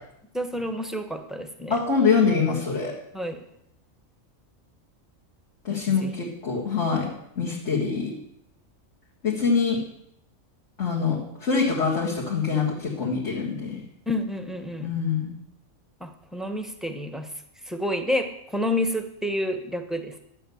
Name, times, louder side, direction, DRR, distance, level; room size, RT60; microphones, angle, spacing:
voice 1, 0.3-1.8 3.1-3.4 5.7-6.3 14.1-14.9 16.0-17.3 17.7-20.2, left 1 dB, ahead, 7 dB, 0.8 m, -29 dB
voice 2, 1.7-2.9 5.6-7.1 7.4-8.2 9.2-9.8 10.8-13.8 14.8-15.3, left 5 dB, 55° left, -5 dB, 2.3 m, -24 dB
12.0 x 8.0 x 7.0 m, 0.78 s
omnidirectional pair, 1.4 m